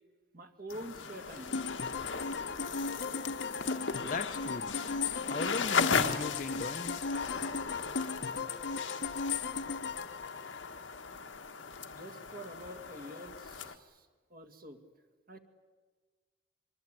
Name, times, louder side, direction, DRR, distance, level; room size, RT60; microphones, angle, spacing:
voice 1, 0.3-1.6 11.9-14.8 15.3-15.4, right 1 dB, 45° right, 8 dB, 1.9 m, -47 dB
sound 1, 0.7-13.8, left 5 dB, 85° left, 1.4 m, -37 dB
sound 2, 1.5-11.2, left 5 dB, 65° left, 1.0 m, -37 dB
voice 2, 4.0-4.8 5.3-7.0, left 3 dB, 45° left, 13 dB, 0.7 m, -38 dB
24.5 x 23.0 x 8.9 m, 1.4 s
head